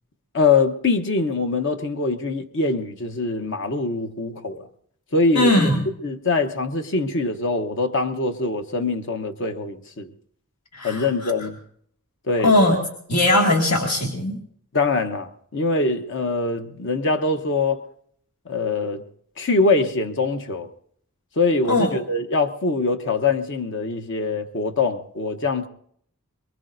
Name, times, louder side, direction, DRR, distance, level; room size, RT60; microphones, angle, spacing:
voice 1, 0.3-4.7 5.1-5.7 6.0-10.1 10.8-11.6 12.3-12.5 14.7-17.8 18.5-19.0 19.4-20.7 21.4-25.7, left 3 dB, 55° left, 0.9 m, -23 dB
voice 2, 5.4-5.8 10.7-11.3 12.4-12.8 13.1-14.4 21.7-21.9, left 1 dB, 85° left, 2.2 m, -19 dB
23.0 x 22.5 x 2.6 m
head